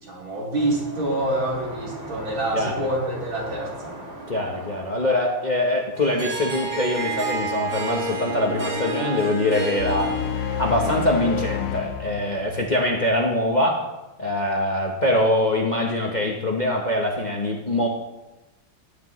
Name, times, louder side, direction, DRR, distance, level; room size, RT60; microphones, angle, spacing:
voice 1, 0.0-4.0, right 1 dB, 90° right, -3 dB, 3.8 m, -26 dB
sound 1, 0.5-6.1, right 1 dB, 35° right, 3.9 m, -39 dB
voice 2, 2.5-2.9 4.3-10.2 10.6-13.9 14.2-17.9, left 1 dB, 30° left, 0 dB, 0.8 m, -23 dB
Harp, 6.0-11.7, right 1 dB, 70° right, 4.2 m, -30 dB
sound 2, 9.8-13.1, left 11 dB, 75° left, 1.4 m, -30 dB
17.5 x 9.9 x 3.1 m, 1.0 s
omnidirectional pair, 2.1 m